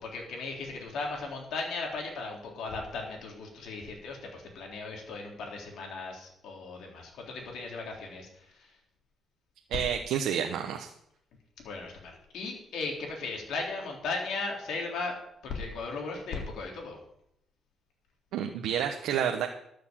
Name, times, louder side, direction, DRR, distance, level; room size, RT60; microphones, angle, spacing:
voice 1, 0.0-8.8 11.6-15.1 15.4-17.0, left 3 dB, 75° left, 0 dB, 3.6 m, -37 dB
voice 2, 9.7-10.9 18.3-19.5, right 8 dB, 90° right, 3 dB, 1.0 m, -29 dB
12.5 x 6.8 x 7.6 m, 0.75 s
cardioid pair, 90°, 0 cm